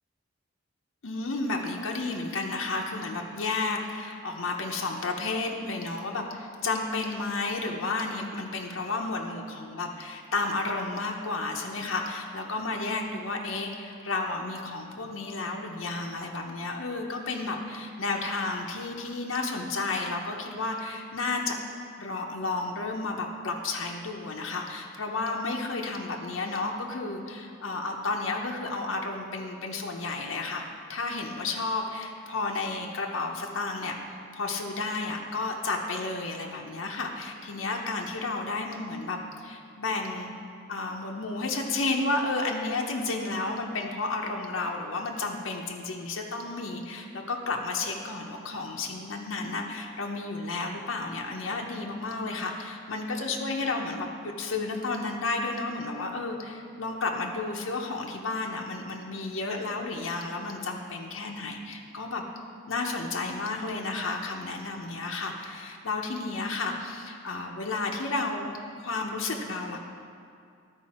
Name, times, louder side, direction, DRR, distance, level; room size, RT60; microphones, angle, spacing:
voice 1, 1.0-21.6 22.0-34.0 34.3-40.3 40.7-62.2 62.7-68.5 68.8-69.8, left 3 dB, 80° left, 0 dB, 0.8 m, -32 dB
12.0 x 4.8 x 4.2 m, 2.3 s
head